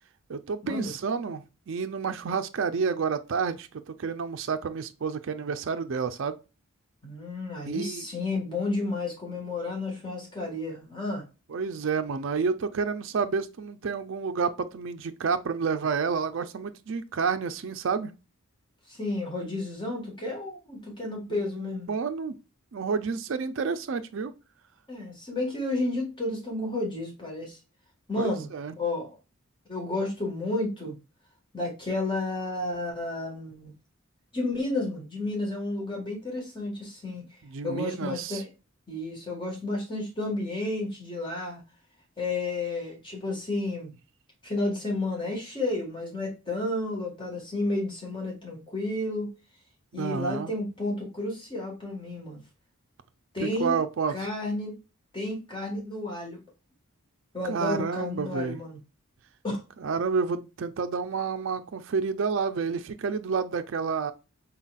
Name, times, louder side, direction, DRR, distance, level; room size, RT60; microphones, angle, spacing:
voice 1, 0.3-6.4 7.6-8.1 11.5-18.1 21.3-22.4 22.7-24.3 28.2-28.8 37.4-38.4 49.9-50.5 53.4-54.3 57.5-58.6 59.8-64.1, right 5 dB, 60° right, 0.4 m, -30 dB
voice 2, 7.0-11.2 18.9-21.9 24.9-27.6 28.1-28.5 28.8-29.1 29.7-31.0 31.5-33.7 34.3-37.2 37.6-38.5 38.9-41.6 42.2-43.9 44.4-49.3 49.9-52.4 53.3-53.8 54.1-54.7 55.1-56.4 57.3-58.8 59.4-59.6, left 2 dB, 20° left, 1.5 m, -31 dB
4.0 x 3.9 x 2.3 m
head